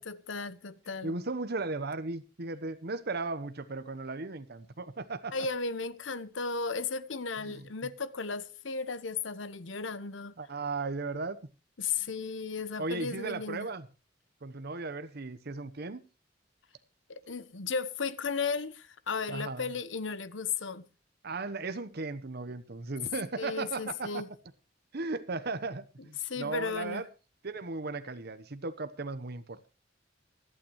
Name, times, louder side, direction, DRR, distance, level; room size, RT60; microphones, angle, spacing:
voice 1, 0.0-1.2 5.3-10.4 11.8-13.7 17.1-20.9 23.4-24.3 26.2-27.1, left 5 dB, 90° left, 1.0 m, -35 dB
voice 2, 1.0-5.3 7.4-7.7 10.4-11.4 11.9-12.1 12.8-13.9 14.4-16.0 19.3-19.7 21.2-24.1 24.9-27.1 27.4-29.7, right 3 dB, 60° right, 1.0 m, -36 dB
26.0 x 9.0 x 3.1 m
head